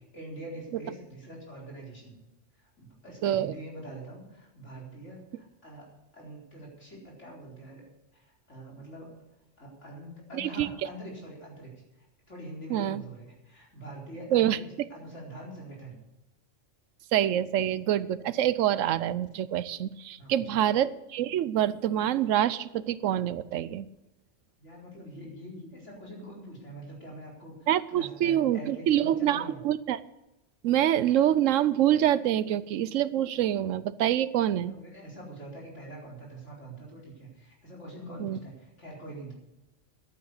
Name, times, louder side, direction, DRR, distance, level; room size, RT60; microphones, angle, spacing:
voice 1, 0.1-2.2 2.8-7.8 8.1-9.1 9.6-14.6 14.9-16.0 20.2-20.6 24.6-29.6 34.6-39.3, right 1 dB, 70° left, -3 dB, 4.7 m, -44 dB
voice 2, 3.2-3.5 10.4-10.7 12.7-13.0 14.3-14.6 17.1-23.9 27.7-30.0 30.6-34.7 38.2-38.4, right 11 dB, 90° right, 17 dB, 1.0 m, -26 dB
11.0 x 9.4 x 8.2 m, 0.95 s
omnidirectional pair, 1.3 m